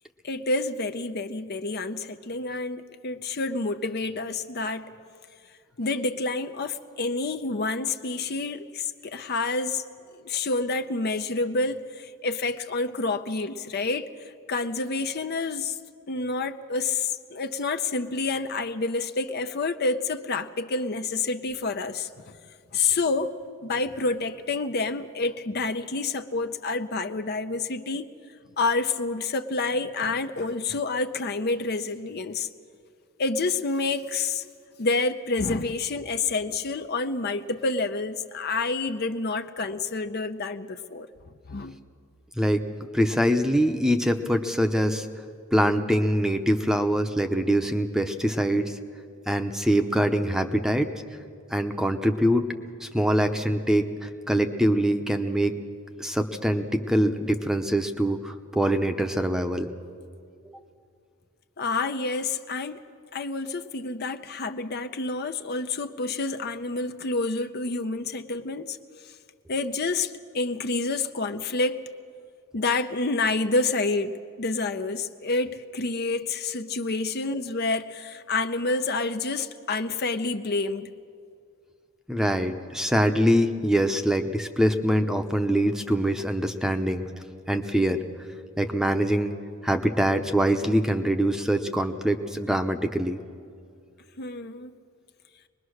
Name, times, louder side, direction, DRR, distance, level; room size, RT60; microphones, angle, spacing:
voice 1, 0.2-4.9 5.8-9.8 10.1-15.8 16.1-22.4 22.7-23.3 23.6-28.1 28.6-32.5 33.2-34.4 34.8-41.1 41.5-41.8 61.6-62.8 63.1-68.8 69.0-69.1 69.5-71.8 72.5-80.9 94.2-94.7, left 3 dB, 50° left, 8 dB, 0.7 m, -28 dB
voice 2, 42.9-45.1 45.5-48.7 49.3-50.9 51.5-52.5 52.8-55.5 56.0-59.7 60.5-60.6 82.1-87.0 87.5-88.0 88.6-89.3 89.6-93.2, equal, 5° right, 6 dB, 0.8 m, -24 dB
24.0 x 21.0 x 6.5 m, 2.3 s
head